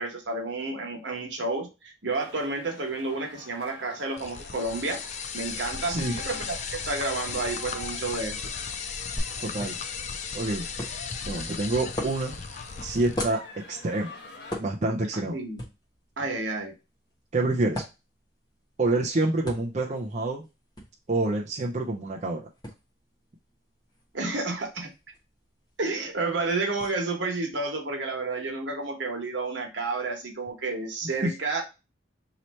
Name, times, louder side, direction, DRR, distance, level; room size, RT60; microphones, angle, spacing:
voice 1, 0.0-5.0 5.3-8.6 15.1-15.6 16.2-16.7 24.1-24.9 25.8-31.6, right 3 dB, 80° right, 2 dB, 1.2 m, -31 dB
sound 1, 2.1-14.6, left 2 dB, 65° left, 0.9 m, -47 dB
sound 2, 4.2-13.3, left 5 dB, 35° left, 0.4 m, -36 dB
sound 3, 9.2-26.9, equal, 20° left, 1.0 m, -42 dB
voice 2, 9.4-9.7 10.3-10.6 11.2-12.4 12.8-14.1 14.6-15.4 17.3-17.8 18.8-20.4 21.1-22.4, right 2 dB, 40° right, -1 dB, 0.5 m, -27 dB
3.1 x 2.8 x 4.2 m, 0.27 s
head